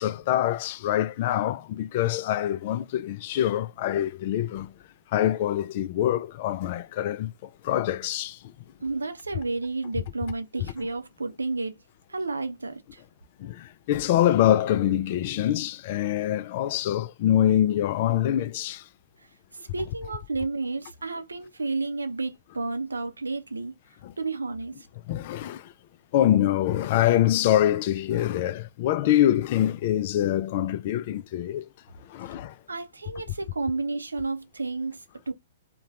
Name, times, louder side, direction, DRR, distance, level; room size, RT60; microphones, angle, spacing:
voice 1, 0.0-4.7 5.1-8.4 13.4-18.8 24.0-24.1 25.1-25.7 26.1-31.7 32.1-32.5, left 12 dB, 50° left, 0.3 m, -25 dB
voice 2, 8.8-11.8 12.1-13.0 19.2-23.7 24.2-24.9 32.7-35.3, right 3 dB, 90° right, 0.5 m, -31 dB
2.8 x 2.2 x 3.0 m
hypercardioid pair, 115°, 0 cm